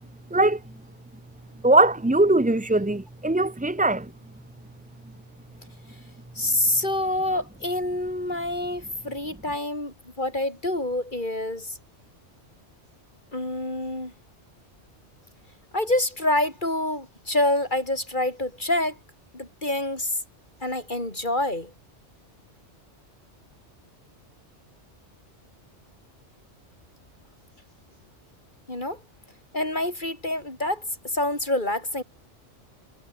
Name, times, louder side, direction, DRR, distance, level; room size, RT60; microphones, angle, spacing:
voice 1, 1.6-4.1, right 2 dB, 10° right, 0.4 m, -20 dB
voice 2, 6.4-11.8 13.3-14.1 15.7-19.0 19.3-20.2 20.6-21.7 28.7-29.0 29.5-32.0, left 1 dB, 40° left, 5.4 m, -27 dB
omnidirectional pair, 1.2 m